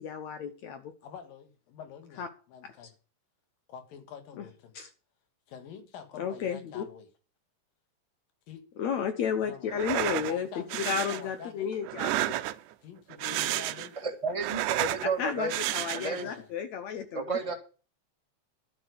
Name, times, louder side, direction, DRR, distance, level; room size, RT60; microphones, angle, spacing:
voice 1, 0.0-0.9 2.2-2.3 4.4-4.5 4.8-4.9 6.2-6.8 8.8-12.4 13.2-13.4 15.2-17.4, left 7 dB, 65° left, 8 dB, 2.0 m, -33 dB
voice 2, 1.0-2.9 3.7-4.7 5.5-7.1 8.5-8.6 9.4-9.7 10.2-11.7 12.8-14.0 16.2-16.5 17.4-17.6, left 7 dB, 85° left, 8 dB, 3.5 m, -47 dB
sound 1, 9.7-10.3 10.7-11.2 11.8-12.7 13.1-14.0 14.3-15.1 15.5-16.2, right 14 dB, 80° right, 2.1 m, -31 dB
voice 3, 14.0-15.5 15.9-16.3 17.1-17.5, right 4 dB, 15° right, 3 dB, 1.2 m, -32 dB
12.0 x 5.7 x 8.1 m, 0.36 s
omnidirectional pair, 3.9 m